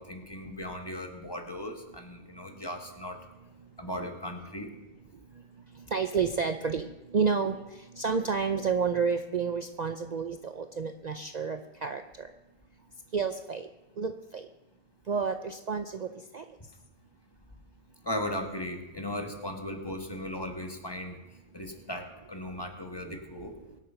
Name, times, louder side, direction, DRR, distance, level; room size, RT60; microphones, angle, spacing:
voice 1, 0.0-3.2 3.8-4.7 18.0-21.2 21.5-23.5, left 1 dB, 15° left, 3 dB, 1.8 m, -37 dB
voice 2, 5.9-6.9 7.1-7.6 8.0-12.3 13.1-13.7 14.0-14.4 15.1-16.4, right 5 dB, 60° right, 7 dB, 0.4 m, -30 dB
23.5 x 8.2 x 5.8 m, 1.0 s
omnidirectional pair, 1.6 m